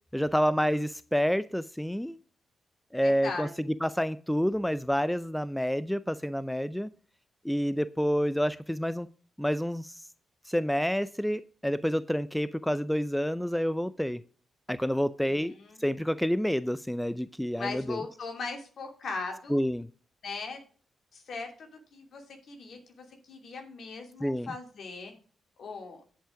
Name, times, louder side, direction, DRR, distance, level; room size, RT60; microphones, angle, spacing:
voice 1, 0.1-2.2 2.9-3.5 3.8-6.9 7.4-9.1 9.4-9.9 10.5-14.2 14.7-15.5 15.8-18.0 19.5-19.9 24.2-24.5, equal, 5° left, 16 dB, 0.5 m, -28 dB
voice 2, 3.0-3.5 15.2-15.9 17.6-19.6 20.2-20.6 21.1-25.1 25.6-26.0, left 4 dB, 65° left, 3 dB, 2.7 m, -39 dB
10.0 x 5.6 x 4.9 m, 0.42 s
hypercardioid pair, 45°, 0 cm